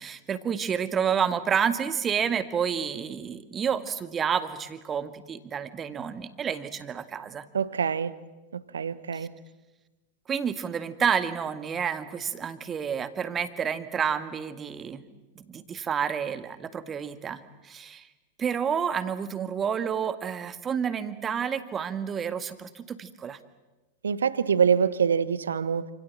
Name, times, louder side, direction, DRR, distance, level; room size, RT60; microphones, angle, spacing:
voice 1, 0.0-7.5 9.1-9.3 10.3-18.1 18.4-23.4, right 7 dB, 25° right, 1.9 m, -29 dB
voice 2, 7.5-8.2 8.5-9.3 24.0-25.9, right 7 dB, 70° right, 1.2 m, -25 dB
29.0 x 27.5 x 7.5 m
figure-of-eight pair, 90°, 0 cm